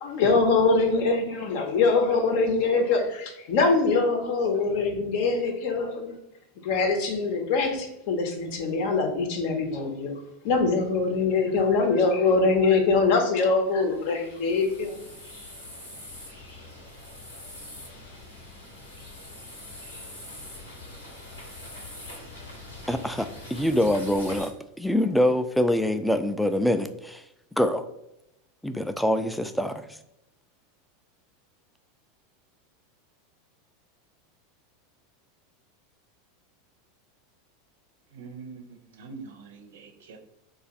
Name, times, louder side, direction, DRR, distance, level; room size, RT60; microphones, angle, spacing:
voice 1, 0.0-6.2 6.6-10.1 10.4-15.0, left 4 dB, 60° left, 0.7 m, -23 dB
sound 1, 13.6-24.5, left 1 dB, 90° left, 0.9 m, -43 dB
voice 2, 22.9-24.5 24.8-27.9 28.6-30.0, left 1 dB, ahead, 0.3 m, -25 dB
voice 3, 38.1-40.2, right 4 dB, 70° right, 0.6 m, -44 dB
2.5 x 2.4 x 4.0 m
hypercardioid pair, 90°, 0 cm